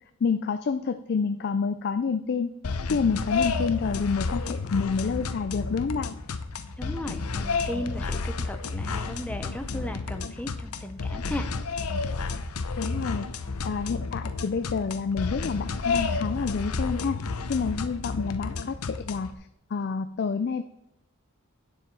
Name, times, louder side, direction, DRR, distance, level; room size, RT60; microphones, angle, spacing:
voice 1, 0.2-2.5 2.9-6.1 12.8-13.3 13.6-17.2 17.5-19.4 19.7-20.6, left 5 dB, 50° left, 10 dB, 0.4 m, -28 dB
sound 1, 2.6-19.3, left 4 dB, 90° left, 0.7 m, -31 dB
voice 2, 6.8-11.5, left 1 dB, 5° left, 7 dB, 0.7 m, -36 dB
9.7 x 7.1 x 4.7 m, 0.83 s
head